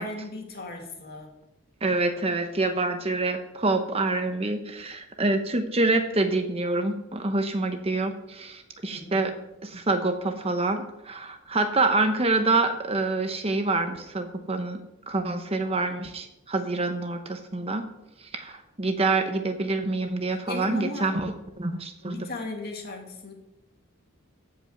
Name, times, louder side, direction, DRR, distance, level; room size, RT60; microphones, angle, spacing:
voice 1, 0.0-1.3 8.8-9.3 20.3-21.2 22.0-23.3, left 2 dB, 50° left, 1 dB, 2.5 m, -37 dB
voice 2, 1.8-9.3 9.6-14.8 15.1-17.8 18.3-21.3 21.6-22.3, right 2 dB, 30° right, 6 dB, 0.9 m, -26 dB
15.0 x 5.5 x 6.6 m, 0.89 s
head